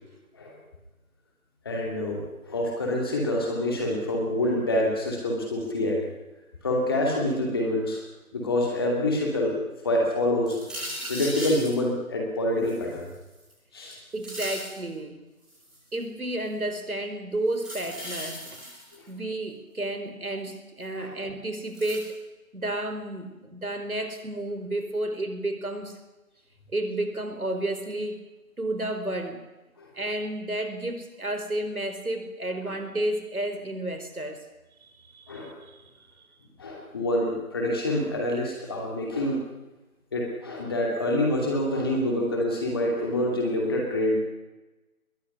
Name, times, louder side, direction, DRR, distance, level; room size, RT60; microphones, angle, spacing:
voice 1, 1.6-6.0 6.6-8.0 8.3-9.6 9.8-13.1 13.7-14.0 18.9-19.0 21.0-21.1 29.8-29.9 35.3-35.5 36.6-39.4 40.1-44.2, left 1 dB, 15° left, 0 dB, 2.6 m, -26 dB
sound 1, 10.5-11.7 12.6-13.5 13.9-14.8 15.4-15.9 17.5-19.1 20.8-20.9 21.7-22.1, equal, ahead, 5.2 m, -37 dB
voice 2, 14.1-15.2 15.9-18.6 19.1-22.2 22.5-26.0 26.7-28.2 28.6-29.4 29.9-34.4 35.1-35.8, right 1 dB, 75° right, 7 dB, 4.7 m, -31 dB
21.5 x 17.0 x 9.6 m, 1.1 s
figure-of-eight pair, 165°, 43 cm